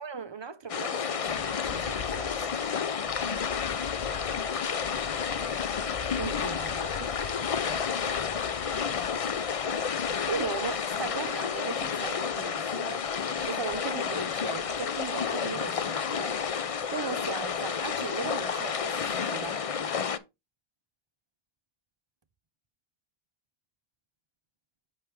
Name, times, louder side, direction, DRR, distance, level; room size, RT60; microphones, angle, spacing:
voice 1, 0.0-2.5 6.1-7.3 10.3-13.1 13.4-19.6, right 5 dB, 35° right, 0.5 m, -38 dB
sound 1, 0.7-20.2, left 6 dB, 45° left, 0.5 m, -30 dB
8.3 x 3.2 x 4.6 m
omnidirectional pair, 1.0 m